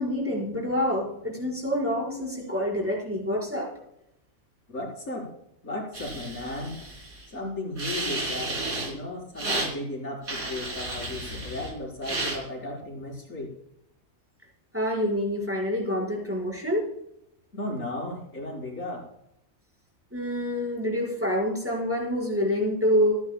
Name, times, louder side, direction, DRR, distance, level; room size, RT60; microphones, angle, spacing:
voice 1, 0.0-3.7 14.7-16.9 20.1-23.2, equal, 10° right, -3 dB, 5.0 m, -27 dB
voice 2, 4.7-5.3 5.6-6.8 7.3-8.5 8.8-13.5 17.5-19.0, left 1 dB, 60° left, -3 dB, 4.8 m, -35 dB
sound 1, 5.9-7.3 7.8-8.9 9.4-9.7 10.3-11.7 12.0-12.4, right 2 dB, 70° right, 3.9 m, -32 dB
29.0 x 9.7 x 2.3 m, 0.76 s
omnidirectional pair, 1.5 m